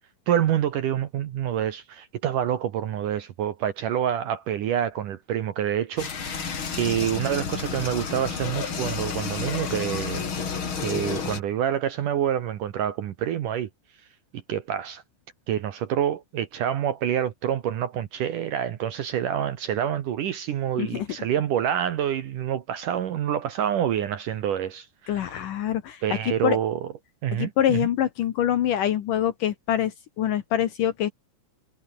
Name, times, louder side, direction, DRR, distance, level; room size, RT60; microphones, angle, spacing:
voice 1, 0.3-10.2 10.8-13.7 14.5-15.0 15.5-25.4 26.0-26.9 27.2-27.9, right 10 dB, 75° right, 1.9 m, -27 dB
sound 1, 6.0-11.4, left 6 dB, 35° left, 2.3 m, -31 dB
voice 2, 25.1-26.6 27.3-31.1, left 11 dB, 75° left, 1.9 m, -25 dB
omnidirectional pair, 5.7 m